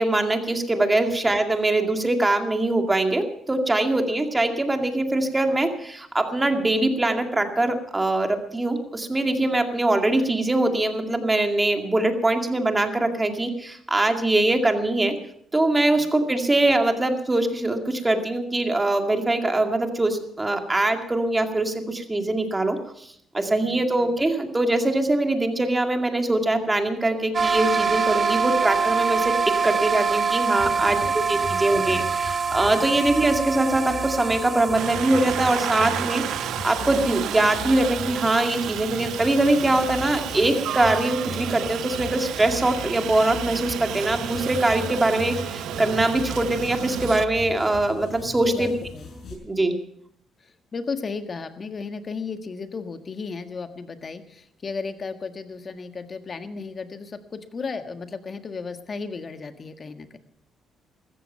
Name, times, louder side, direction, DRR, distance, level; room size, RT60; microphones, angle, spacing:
voice 1, 0.0-15.1 15.5-22.8 23.3-29.3 29.6-48.7 49.3-49.7, right 2 dB, 15° right, 5 dB, 2.3 m, -23 dB
sound 1, 27.3-37.9, right 5 dB, 40° right, 0.9 m, -26 dB
sound 2, 30.6-49.3, left 4 dB, 60° left, 5.9 m, -39 dB
voice 2, 30.6-31.7 32.8-33.0 48.4-49.1 50.4-60.2, left 4 dB, 40° left, 8 dB, 1.6 m, -35 dB
Aircraft, 34.8-47.2, right 11 dB, 80° right, 0.6 m, -32 dB
15.0 x 14.0 x 5.7 m, 0.70 s
cardioid pair, 90°, 0 cm